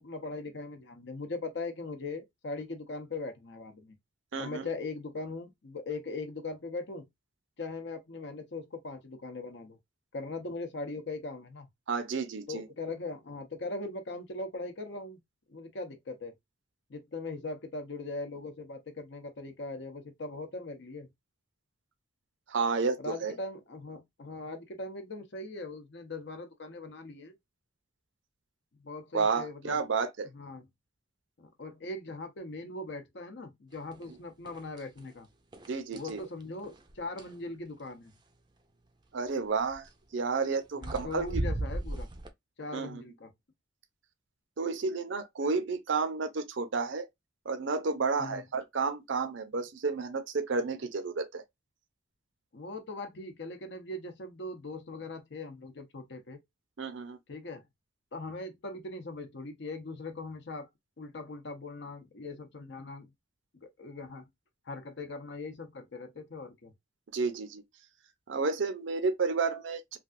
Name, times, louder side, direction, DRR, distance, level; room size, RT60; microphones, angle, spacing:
voice 1, 0.0-3.9 4.4-7.1 7.6-9.8 10.1-11.7 12.5-15.2 15.5-16.3 16.9-21.1 23.0-27.3 28.8-29.8 30.3-30.6 31.4-35.3 35.9-38.1 40.8-42.1 42.6-43.3 48.2-48.4 52.5-56.4 57.3-57.6 58.1-60.7 61.0-63.1 63.6-64.3 64.7-66.7, left 3 dB, 60° left, 0.7 m, -40 dB
voice 2, 4.3-4.6 11.9-12.6 22.5-23.3 29.1-30.3 35.7-36.2 39.1-41.4 42.7-43.0 44.6-47.1 47.5-51.4 56.8-57.2 67.1-67.6 68.3-70.0, right 4 dB, 70° right, 0.5 m, -31 dB
sound 1, 33.9-34.1 34.5-35.1 35.5-37.4 39.6-39.9 40.5-40.6 40.8-42.3, right 1 dB, 20° right, 0.4 m, -36 dB
3.3 x 2.4 x 2.4 m
head